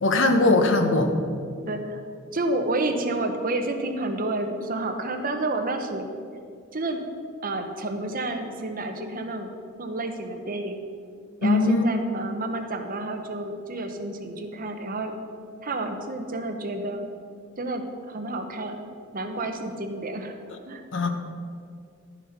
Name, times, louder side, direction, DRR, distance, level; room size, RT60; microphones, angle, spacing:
voice 1, 0.0-1.1 11.4-11.9 20.9-21.1, left 2 dB, 65° left, 6 dB, 1.0 m, -20 dB
voice 2, 1.6-2.0 2.3-6.1 6.7-7.0 7.4-9.5 9.8-10.8 11.4-15.2 15.6-17.1 17.6-18.8 19.1-20.4 20.6-20.8, right 2 dB, 45° right, 5 dB, 1.0 m, -30 dB
11.5 x 7.1 x 5.8 m, 2.3 s
head